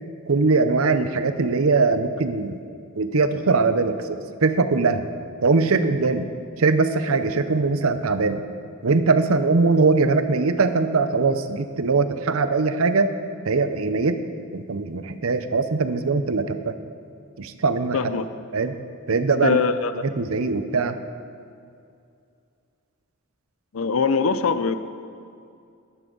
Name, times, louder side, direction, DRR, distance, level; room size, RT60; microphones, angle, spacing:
voice 1, 0.3-2.6 3.0-5.0 5.4-6.3 6.6-8.4 8.8-13.1 13.4-14.2 14.5-16.7 17.4-18.0 18.5-18.8 19.1-19.6 20.2-21.0, right 4 dB, 80° right, 10 dB, 0.7 m, -21 dB
voice 2, 17.9-18.2 19.4-19.9 23.7-24.8, left 5 dB, 70° left, 12 dB, 0.6 m, -22 dB
13.5 x 12.0 x 3.9 m, 2.4 s
head